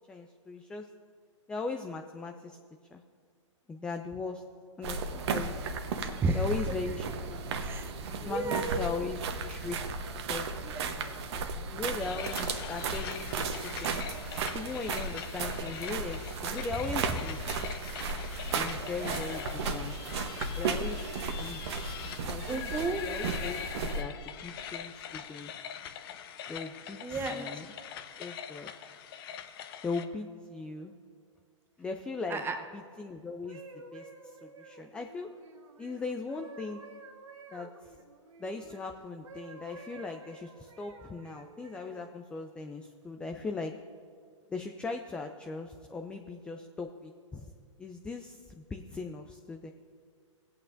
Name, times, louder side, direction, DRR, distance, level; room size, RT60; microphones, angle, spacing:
voice 1, 0.1-0.9 1.5-2.6 2.9-3.0 3.7-4.4 4.8-5.5 6.3-7.0 7.3-7.5 8.0-9.2 9.5-9.8 10.3-10.5 11.7-14.0 14.5-17.6 18.5-20.0 20.6-21.6 22.2-22.7 23.0-25.5 26.5-27.7 28.2-28.7 29.8-30.9 31.8-32.4 32.7-35.3 35.8-36.8 37.5-37.9 38.4-43.8 44.5-47.5 47.8-49.7, left 3 dB, 5° left, 4 dB, 0.3 m, -39 dB
sound 1, 4.8-24.0, right 4 dB, 55° right, 1.0 m, -35 dB
voice 2, 6.0-6.4 7.6-7.9 8.2-8.8 10.7-11.4 22.5-23.0 27.0-27.5 32.3-32.6, right 3 dB, 15° right, 6 dB, 0.9 m, -33 dB
sound 2, 12.0-30.1, left 9 dB, 45° left, 0.8 m, -42 dB
sound 3, 33.3-38.8 39.2-42.1 42.8-43.0, right 4 dB, 75° right, 1.4 m, -51 dB
18.5 x 8.5 x 2.6 m, 2.1 s
hypercardioid pair, 135°, 16 cm